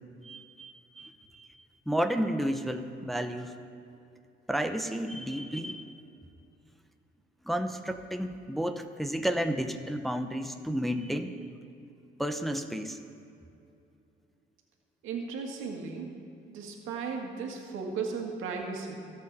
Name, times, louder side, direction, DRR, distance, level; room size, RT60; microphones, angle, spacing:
voice 1, 0.2-1.5 1.9-3.5 4.5-6.0 7.4-11.3 12.2-13.0, equal, ahead, 6 dB, 0.8 m, -32 dB
voice 2, 15.0-16.1 16.5-18.9, right 5 dB, 90° right, 1 dB, 2.0 m, -36 dB
22.5 x 7.8 x 4.2 m, 2.7 s
cardioid pair, 90°, 20 cm